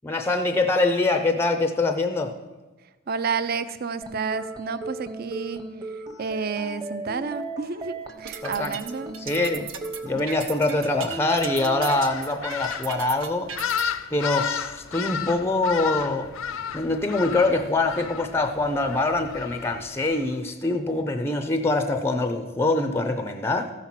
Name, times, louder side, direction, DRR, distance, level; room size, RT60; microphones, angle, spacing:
voice 1, 0.0-2.4 8.4-8.8 9.2-9.6 10.0-13.5 14.1-16.3 16.7-23.7, left 2 dB, 10° left, 7 dB, 0.5 m, -24 dB
voice 2, 3.1-5.6 6.2-9.1 10.7-10.8, right 5 dB, 45° right, 13 dB, 0.5 m, -30 dB
sound 1, 4.0-12.0, right 3 dB, 20° right, 0.9 m, -36 dB
sound 2, 8.1-13.8, right 6 dB, 70° right, 0.9 m, -37 dB
sound 3, 11.3-20.3, left 8 dB, 75° left, 0.5 m, -33 dB
14.0 x 5.9 x 5.8 m, 1.2 s
head